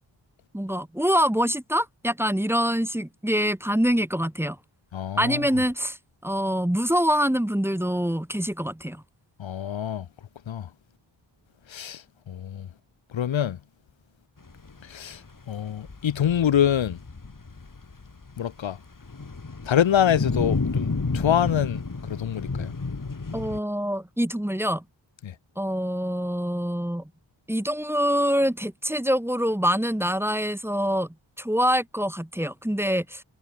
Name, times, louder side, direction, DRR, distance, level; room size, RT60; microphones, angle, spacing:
voice 1, 0.5-4.6 5.2-6.0 6.2-9.0 23.3-24.8 25.6-27.1 27.5-31.1 31.4-33.2, equal, 5° right, 1.5 m, -25 dB
voice 2, 4.9-5.5 9.4-10.1 10.5-10.7 11.7-12.7 13.1-13.6 14.8-17.0 18.4-18.8 19.6-22.8 25.2-25.3, left 9 dB, 75° left, 1.2 m, -25 dB
sound 1, 14.5-23.6, left 3 dB, 40° left, 6.5 m, -31 dB
cardioid pair, 50°, 47 cm